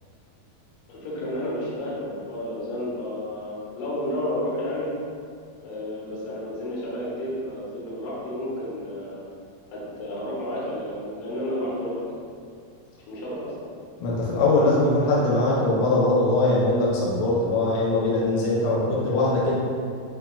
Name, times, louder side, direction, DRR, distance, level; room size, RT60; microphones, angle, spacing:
voice 1, 0.9-4.9 5.6-9.3 9.7-12.0 13.1-13.5, left 1 dB, 70° left, -7 dB, 2.3 m, -31 dB
voice 2, 14.0-19.6, left 2 dB, 85° left, -6 dB, 2.5 m, -21 dB
6.4 x 2.2 x 2.2 m, 2.3 s
omnidirectional pair, 4.4 m